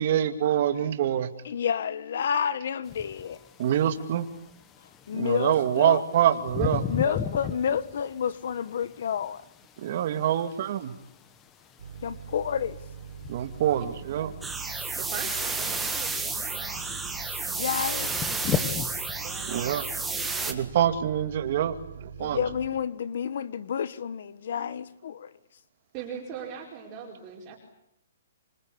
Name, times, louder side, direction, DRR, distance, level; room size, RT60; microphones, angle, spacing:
voice 1, 0.0-1.3 3.6-4.3 5.1-6.8 9.8-10.9 13.3-14.3 19.5-19.8 20.5-21.7 22.0-22.4, right 10 dB, 40° right, 2.5 m, -25 dB
voice 2, 1.4-3.4 5.1-6.0 6.9-9.4 12.0-12.8 17.5-18.1 22.2-25.3, left 8 dB, 55° left, 1.3 m, -29 dB
sound 1, 2.8-19.1, left 8 dB, 15° left, 1.4 m, -38 dB
voice 3, 7.0-7.6 13.8-14.4 14.9-17.2 18.3-19.7 20.1-20.7 22.3-22.5 25.9-27.6, right 7 dB, 25° right, 4.8 m, -41 dB
sound 2, 11.8-22.7, right 7 dB, 70° right, 4.9 m, -43 dB
sound 3, 14.4-20.5, right 3 dB, 5° right, 1.8 m, -31 dB
26.5 x 25.0 x 8.6 m
hypercardioid pair, 170°, 0 cm